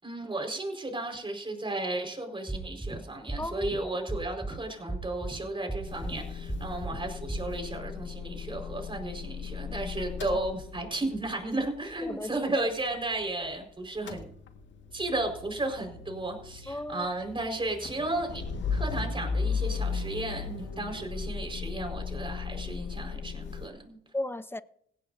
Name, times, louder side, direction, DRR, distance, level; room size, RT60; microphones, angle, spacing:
voice 1, 0.0-14.3 14.9-18.4 18.7-24.0, right 2 dB, 25° right, 4.9 m, -34 dB
sound 1, 2.5-3.0 3.3-3.8 4.1-4.6 4.9-5.4 5.7-6.2 6.5-7.0 7.3-7.4, right 2 dB, 10° right, 3.8 m, -34 dB
voice 2, 3.4-3.7 12.0-12.5 16.7-17.1 24.1-24.6, left 1 dB, 10° left, 0.7 m, -35 dB
Motor vehicle (road) / Engine starting / Idling, 5.9-13.6 13.8-23.7, left 5 dB, 65° left, 1.8 m, -36 dB
18.0 x 15.5 x 2.7 m
supercardioid pair, 70°, 21 cm